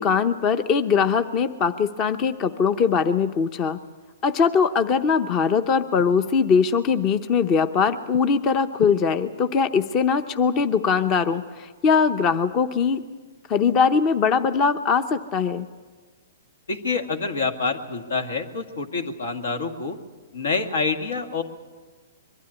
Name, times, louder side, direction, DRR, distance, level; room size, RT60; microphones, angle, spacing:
voice 1, 0.0-3.8 4.2-13.0 13.5-15.7, left 6 dB, 30° left, 10 dB, 0.7 m, -21 dB
voice 2, 16.7-20.0 20.3-21.4, left 4 dB, 85° left, 6 dB, 1.9 m, -27 dB
22.5 x 12.5 x 9.9 m, 1.4 s
hypercardioid pair, 145°, 0 cm